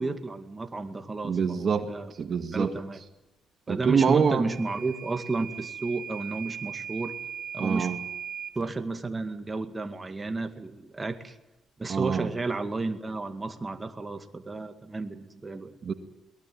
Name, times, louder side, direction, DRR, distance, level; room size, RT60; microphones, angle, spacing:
voice 1, 0.0-2.1 2.5-3.0 3.7-7.1 7.5-7.9 8.6-11.4 11.8-15.7, right 3 dB, 20° right, 6 dB, 2.1 m, -32 dB
voice 2, 1.2-2.7 3.7-4.5 7.6-8.0 11.9-12.3 15.8-15.9, right 6 dB, 50° right, 7 dB, 1.8 m, -25 dB
Microwave oven / Alarm, 4.5-8.6, right 8 dB, 65° right, 4.0 m, -39 dB
22.0 x 19.0 x 9.4 m, 0.98 s
cardioid pair, 90°, 0 cm